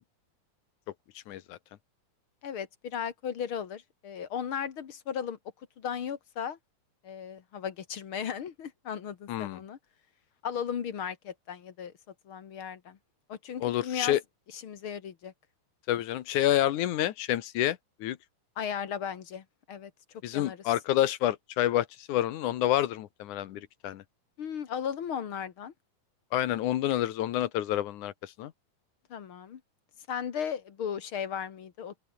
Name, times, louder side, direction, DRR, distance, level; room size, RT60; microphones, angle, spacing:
voice 1, 1.3-1.6 9.3-9.6 13.6-14.2 15.9-18.2 20.2-24.0 26.3-28.5, left 13 dB, 70° left, 2.4 m, -28 dB
voice 2, 2.4-5.4 5.8-6.6 7.0-9.8 10.4-11.9 12.3-13.0 13.3-14.2 14.5-15.3 18.6-19.9 20.3-20.6 24.4-25.7 29.1-29.6 30.1-32.0, left 8 dB, 50° left, 1.9 m, -36 dB
open air
omnidirectional pair, 3.9 m